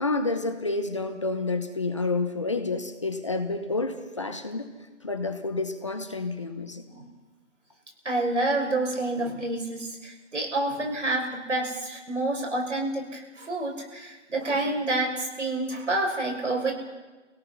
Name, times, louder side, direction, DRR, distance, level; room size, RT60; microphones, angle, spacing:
voice 1, 0.0-4.7 5.0-6.8, left 3 dB, 25° left, 6 dB, 0.9 m, -29 dB
voice 2, 8.0-16.7, right 2 dB, 80° right, 1 dB, 6.7 m, -28 dB
25.5 x 17.5 x 5.9 m, 1.3 s
hypercardioid pair, 175°, 35 cm